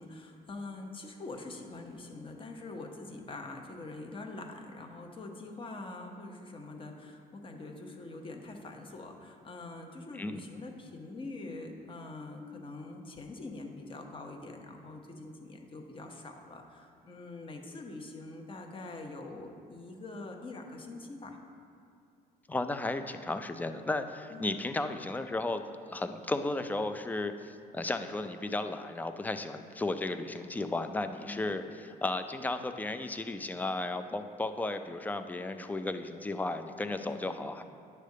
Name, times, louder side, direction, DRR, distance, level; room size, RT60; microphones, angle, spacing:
voice 1, 0.0-21.4 24.3-24.6 31.2-31.5 37.0-37.4, left 2 dB, 30° left, 3 dB, 0.9 m, -44 dB
voice 2, 22.5-25.6 25.9-37.6, left 2 dB, 10° left, 9 dB, 0.4 m, -34 dB
9.4 x 3.3 x 6.5 m, 2.4 s
cardioid pair, 110°, 17 cm